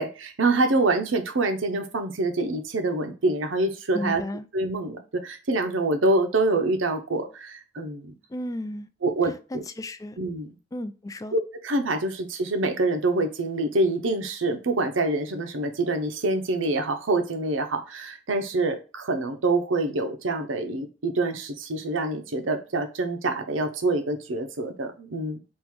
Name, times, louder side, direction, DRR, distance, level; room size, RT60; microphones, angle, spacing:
voice 1, 0.0-4.2 4.5-8.2 9.0-9.6 10.2-10.5 11.3-25.4, right 2 dB, 85° right, 0.7 m, -26 dB
voice 2, 3.9-4.5 8.3-8.9 9.5-10.2 10.7-11.4, left 1 dB, 20° left, 0.3 m, -33 dB
3.7 x 2.5 x 4.6 m
head